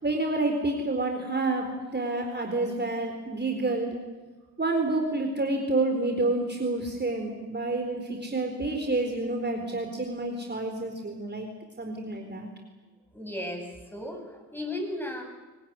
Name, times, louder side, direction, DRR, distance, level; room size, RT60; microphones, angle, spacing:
voice 1, 0.0-4.0 4.6-11.5 11.8-12.5, right 2 dB, 25° right, 3 dB, 4.3 m, -29 dB
voice 2, 13.1-15.2, left 1 dB, 5° left, 4 dB, 7.3 m, -35 dB
22.5 x 19.0 x 9.7 m, 1.3 s
hypercardioid pair, 50°, 41 cm